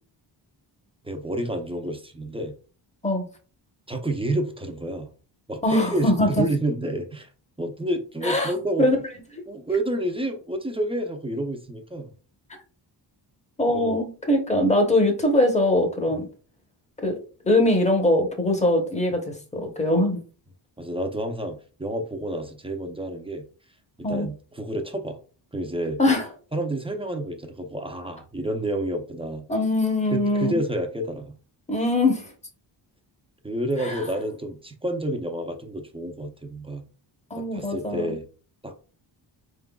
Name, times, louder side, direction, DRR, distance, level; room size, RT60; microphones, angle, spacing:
voice 1, 1.0-2.5 3.9-5.1 5.5-7.3 7.6-8.9 9.5-12.1 13.7-14.0 16.1-16.3 20.8-23.4 24.0-25.2 25.5-26.0 26.5-29.4 30.1-31.3 33.4-36.9 37.4-38.3 38.6-38.8, right 1 dB, 10° right, 0.6 m, -29 dB
voice 2, 5.6-6.4 8.2-8.5 8.8-9.0 13.6-16.3 17.0-17.2 17.4-20.2 24.0-24.3 26.0-26.2 29.5-30.6 31.7-32.2 33.8-33.9 37.3-38.1, left 1 dB, 15° left, 0.9 m, -22 dB
4.3 x 3.7 x 2.3 m
wide cardioid pair, 120°, 45 cm